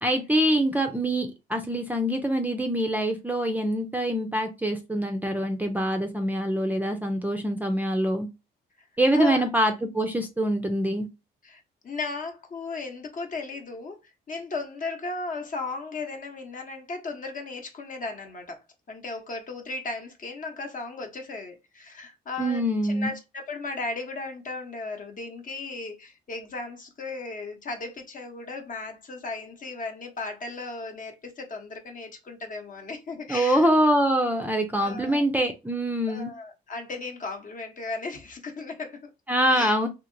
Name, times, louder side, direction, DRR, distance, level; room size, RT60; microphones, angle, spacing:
voice 1, 0.0-8.3 9.0-11.1 22.4-23.1 33.3-36.3 39.3-39.9, right 1 dB, 10° right, 0.5 m, -24 dB
voice 2, 9.1-9.5 11.4-33.7 34.8-35.2 36.1-39.1 39.5-39.8, left 3 dB, 40° left, 0.9 m, -36 dB
2.8 x 2.8 x 2.6 m
cardioid pair, 90°, 20 cm